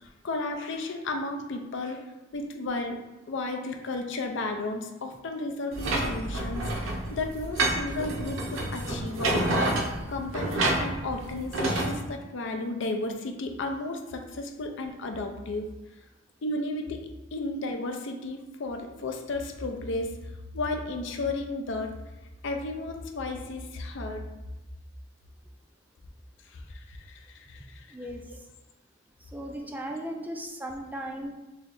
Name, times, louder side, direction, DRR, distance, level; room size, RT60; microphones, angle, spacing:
voice 1, 0.0-9.6 10.1-15.7 16.4-22.0 22.4-24.3 26.5-27.9, left 2 dB, 65° left, 4 dB, 0.5 m, -34 dB
sound 1, 5.7-11.9, right 2 dB, 80° right, 0.7 m, -29 dB
voice 2, 27.9-28.2 29.2-31.3, right 1 dB, 10° right, 1 dB, 0.3 m, -36 dB
3.2 x 2.7 x 3.8 m, 1.1 s
head